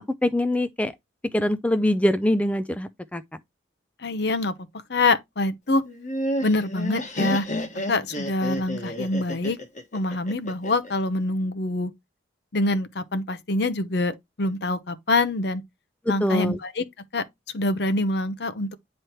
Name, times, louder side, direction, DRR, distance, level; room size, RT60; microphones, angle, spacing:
voice 1, 0.2-0.9 1.3-3.2 16.1-16.6, left 1 dB, 5° left, 0.3 m, -23 dB
voice 2, 4.0-4.5 4.9-5.8 6.4-7.5 7.9-9.6 9.9-11.9 12.5-15.6 16.1-16.8 17.1-17.2 17.5-18.7, left 2 dB, 60° left, 0.8 m, -25 dB
Laughter, 5.8-10.9, equal, 40° left, 1.5 m, -30 dB
9.3 x 3.2 x 4.4 m
head